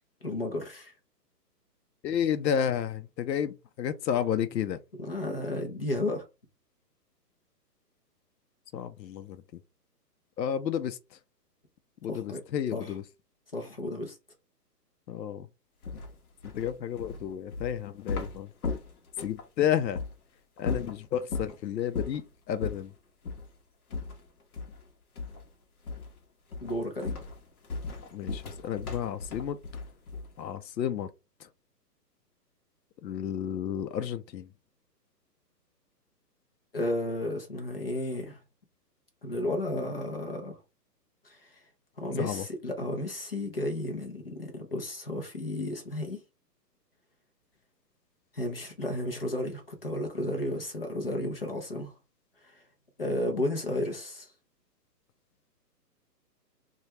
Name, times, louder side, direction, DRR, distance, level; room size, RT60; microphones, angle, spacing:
voice 1, 0.2-0.9 5.0-6.3 12.1-12.4 12.7-12.9 13.5-14.2 26.6-27.2 36.7-38.4 39.2-40.6 41.2-41.6 42.0-46.2 48.3-51.9 52.4-52.5 53.0-54.3, left 1 dB, 35° left, 0.6 m, -33 dB
voice 2, 2.0-4.8 8.7-9.4 10.4-11.0 12.0-13.0 15.1-15.5 16.5-18.5 19.2-20.0 20.6-22.9 28.1-29.6 30.4-31.1 31.4-31.5 33.0-34.5 42.2-42.5, left 9 dB, 85° left, 0.6 m, -31 dB
sound 1, 15.8-19.5 19.9-20.1 20.6-21.6 21.9-22.3 22.6-22.8 23.2-23.5 23.9-24.9 25.2-25.5 25.9-26.2 26.5-30.4, left 4 dB, 60° left, 0.9 m, -36 dB
3.1 x 2.3 x 2.7 m
hypercardioid pair, 175°, 49 cm